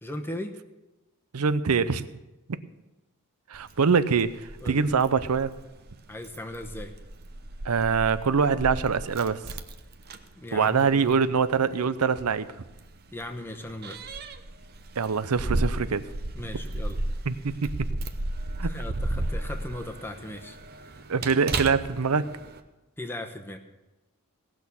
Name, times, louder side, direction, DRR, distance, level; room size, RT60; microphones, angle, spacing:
voice 1, 0.0-0.5 4.6-4.8 6.1-6.9 10.3-11.2 13.1-14.0 16.3-17.0 18.6-20.6 20.8-21.0 23.0-23.6, left 1 dB, 10° left, 5 dB, 1.0 m, -38 dB
voice 2, 1.3-2.1 3.5-5.5 7.6-9.4 10.5-12.5 15.0-16.0 17.3-17.7 18.6-18.7 21.1-22.3, right 5 dB, 85° right, 14 dB, 0.6 m, -24 dB
Keys jangling, 3.5-22.6, right 2 dB, 45° right, 0.8 m, -35 dB
18.0 x 6.3 x 7.0 m, 1.1 s
head